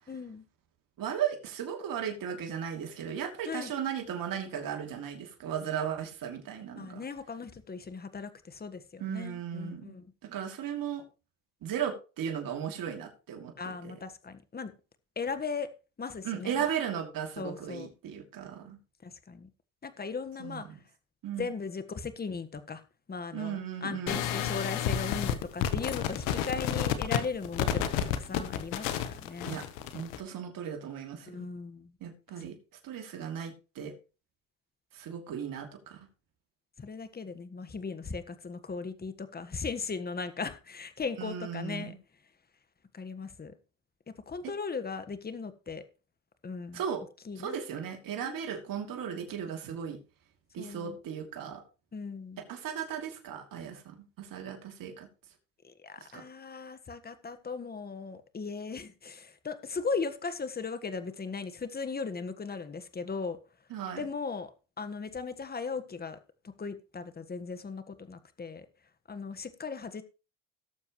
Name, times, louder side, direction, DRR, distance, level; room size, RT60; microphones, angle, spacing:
voice 1, 0.1-0.4 3.5-3.7 6.8-10.1 13.6-14.7 15.2-15.7 16.0-16.7 17.4-17.9 19.0-19.5 19.8-20.7 21.4-22.8 23.1-29.6 31.3-31.9 36.8-41.9 42.9-43.5 44.1-45.8 46.4-46.8 47.3-47.6 48.2-48.4 50.6-51.0 51.9-52.4 55.6-63.4 64.0-64.5 64.8-66.2 66.4-68.7 69.1-70.0, left 4 dB, 25° left, 1.4 m, -38 dB
voice 2, 1.0-7.0 9.0-9.9 10.2-11.0 11.6-13.9 16.2-18.8 20.4-20.8 21.2-21.5 23.3-24.3 29.5-29.7 29.9-31.5 32.0-32.5 32.8-33.9 34.9-36.0 41.2-42.0 46.7-47.0 47.4-50.0 50.5-51.6 52.5-55.1 56.0-56.2 63.7-64.0, right 8 dB, 60° right, 2.9 m, -36 dB
sound 1, 24.1-30.2, left 9 dB, 90° left, 1.2 m, -31 dB
18.0 x 7.1 x 3.1 m
supercardioid pair, 80°, 39 cm